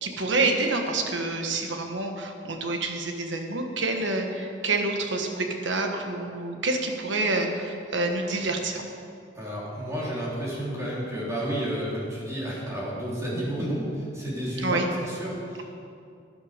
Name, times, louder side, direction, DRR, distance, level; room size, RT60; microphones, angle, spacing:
voice 1, 0.0-8.8 14.6-14.9, right 2 dB, 85° right, 3 dB, 1.4 m, -27 dB
voice 2, 9.3-15.6, equal, 15° right, -6 dB, 3.5 m, -31 dB
11.5 x 11.0 x 5.1 m, 2.5 s
head